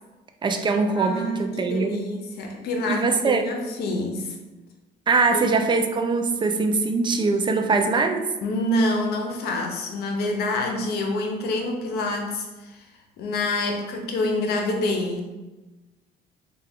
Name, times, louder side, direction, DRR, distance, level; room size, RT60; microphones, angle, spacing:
voice 1, 0.4-2.1 2.9-3.5 5.1-8.3, right 4 dB, 30° right, 5 dB, 0.3 m, -22 dB
voice 2, 1.0-4.3 5.3-5.5 8.4-12.8 13.2-15.3, left 1 dB, 70° left, 3 dB, 0.6 m, -27 dB
3.3 x 2.3 x 3.4 m, 1.1 s
cardioid pair, 110°, 17 cm